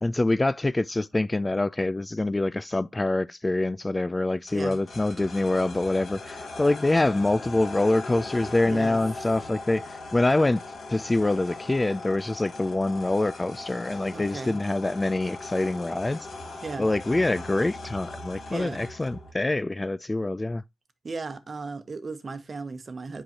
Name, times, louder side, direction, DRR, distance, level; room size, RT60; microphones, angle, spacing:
voice 1, 0.0-10.6 10.9-16.2 16.8-20.6, left 2 dB, 25° left, 0.3 m, -25 dB
sound 1, 4.5-19.3, left 2 dB, 65° left, 1.9 m, -39 dB
voice 2, 8.6-9.0 14.1-14.6 16.6-16.9 18.5-18.9 21.0-23.2, right 4 dB, 45° right, 0.9 m, -36 dB
7.7 x 4.8 x 2.8 m
cardioid pair, 55°, 0 cm